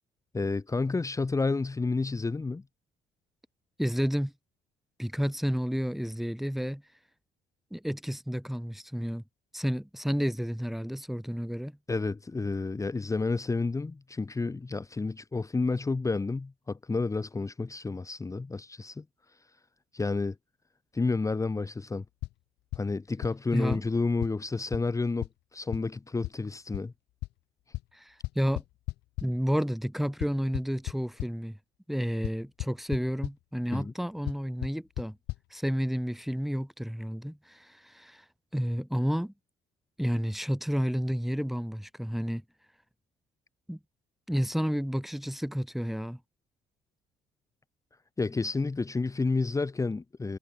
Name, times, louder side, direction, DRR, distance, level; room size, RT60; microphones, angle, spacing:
voice 1, 0.3-2.6 11.9-19.0 19.9-20.4 20.9-22.0 22.8-26.9 33.7-33.9 48.2-50.4, left 3 dB, 20° left, 2.3 m, -30 dB
voice 2, 3.8-4.3 5.0-6.8 7.7-9.2 9.5-11.7 23.5-23.8 27.9-28.6 29.2-31.6 31.9-35.2 35.5-38.2 38.5-39.3 40.0-42.4 43.7-43.8 44.3-46.2, equal, ahead, 3.1 m, -31 dB
sound 1, 22.2-22.3 22.7-22.8 23.2-23.3 23.7-23.8 24.2-24.3 24.7-24.8 25.2-25.3 25.7-25.8 26.2-26.3 26.7-26.8 27.2-27.3 27.7-27.8 28.2-29.2 30.2-31.3 32.2-32.3 32.6-33.0 33.2-33.3 34.3-34.4 34.6-34.7 35.0-35.1 35.3-35.4, left 19 dB, 85° left, 1.4 m, -33 dB
cardioid pair, 110°, 17 cm